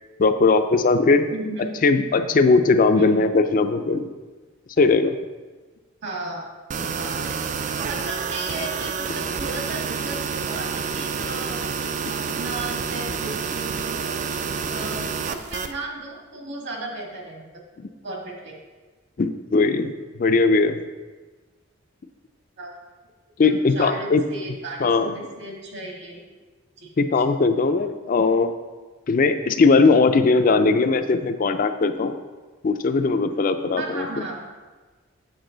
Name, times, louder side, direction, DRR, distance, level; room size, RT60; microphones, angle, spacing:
voice 1, 0.2-1.3 1.8-4.1 4.8-5.1 17.8-17.9 19.2-20.8 23.4-24.2 24.8-25.1 27.0-28.5 29.1-32.1 32.6-34.1, left 3 dB, 40° left, 8 dB, 0.4 m, -19 dB
voice 2, 1.3-1.7 2.9-3.3 6.0-6.4 6.7-7.3 7.9-11.6 12.1-14.4 14.7-17.5 18.0-18.6 22.6-22.8 23.4-26.2 26.8-26.9 33.8-34.4, right 2 dB, 60° right, 0 dB, 1.7 m, -35 dB
sound 1, 6.7-15.7, right 5 dB, 35° right, 0.4 m, -28 dB
7.9 x 7.3 x 3.9 m, 1.3 s
head